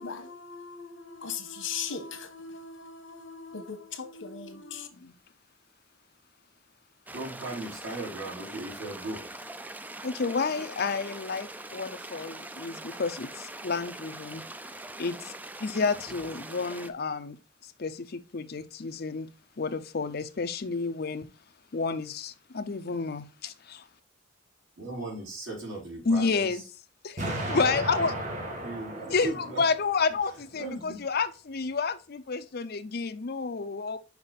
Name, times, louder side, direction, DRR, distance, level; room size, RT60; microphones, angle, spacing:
voice 1, 0.0-4.9, left 6 dB, 80° left, 1.3 m, -39 dB
sound 1, 7.1-16.9, right 2 dB, 10° right, 0.4 m, -42 dB
voice 2, 7.1-9.3 16.1-16.2 24.8-26.6 28.6-29.6 30.5-31.0, right 2 dB, 80° right, 3.8 m, -37 dB
voice 3, 10.0-14.4 15.0-15.3 15.6-17.4 17.6-19.3 19.6-21.3 21.7-23.8 26.0-26.6 27.0-28.2 29.1-34.0, left 4 dB, 55° left, 0.6 m, -30 dB
Explosion, 27.2-30.2, right 1 dB, 40° right, 1.7 m, -34 dB
5.9 x 5.2 x 4.0 m
head